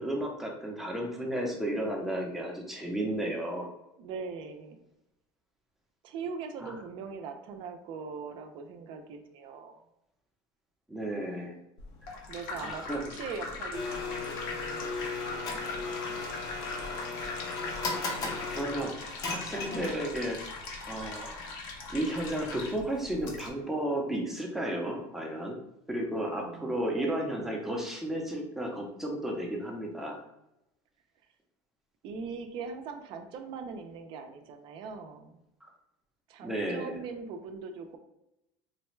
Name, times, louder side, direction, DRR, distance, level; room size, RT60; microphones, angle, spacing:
voice 1, 0.0-3.7 6.6-6.7 10.9-11.6 12.2-13.1 18.2-20.4 20.9-21.5 21.9-25.6 25.9-30.2 36.4-37.0, right 1 dB, 5° right, -1 dB, 0.6 m, -33 dB
voice 2, 4.0-4.8 6.0-9.8 12.3-12.8 13.1-16.3 16.5-17.0 26.3-27.5 32.0-35.4 36.3-38.0, right 5 dB, 50° right, 6 dB, 0.5 m, -41 dB
sound 1, 11.8-23.5, left 3 dB, 80° left, 0.8 m, -41 dB
Domestic sounds home sounds, 13.7-20.2, left 3 dB, 35° left, 0.6 m, -36 dB
4.0 x 2.2 x 3.1 m, 0.87 s
cardioid pair, 150°, 11 cm